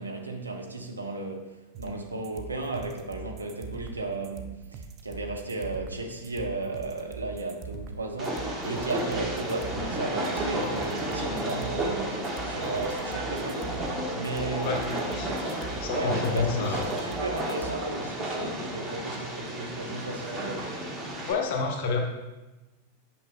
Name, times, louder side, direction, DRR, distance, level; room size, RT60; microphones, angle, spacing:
voice 1, 0.0-13.8 14.1-15.2 15.9-20.8, right 2 dB, 80° right, 0.8 m, -35 dB
sound 1, 1.7-17.7, right 6 dB, 35° right, 0.6 m, -42 dB
Train, 8.2-21.3, right 1 dB, 15° right, 1.2 m, -32 dB
voice 2, 15.8-16.8 21.3-22.0, left 4 dB, 45° left, 1.1 m, -28 dB
8.5 x 5.8 x 2.3 m
figure-of-eight pair, 90°, 0 cm